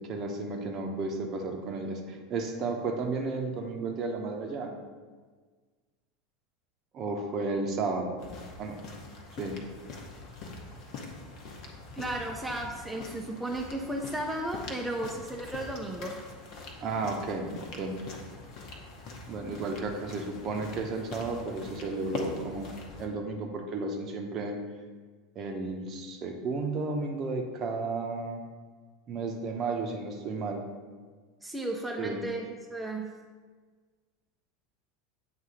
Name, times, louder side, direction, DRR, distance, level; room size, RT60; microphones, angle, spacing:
voice 1, 0.1-4.7 6.9-8.2 8.6-8.8 9.4-9.6 16.8-17.5 17.8-18.0 19.3-24.6 25.3-28.4 29.1-30.6 32.0-32.2, right 3 dB, 40° right, 3 dB, 0.9 m, -33 dB
sound 1, 8.2-23.1, left 3 dB, 50° left, 1.0 m, -43 dB
voice 2, 12.0-16.2 31.4-33.1, right 1 dB, 5° right, -1 dB, 0.6 m, -34 dB
7.7 x 2.6 x 4.9 m, 1.5 s
figure-of-eight pair, 80°, 0 cm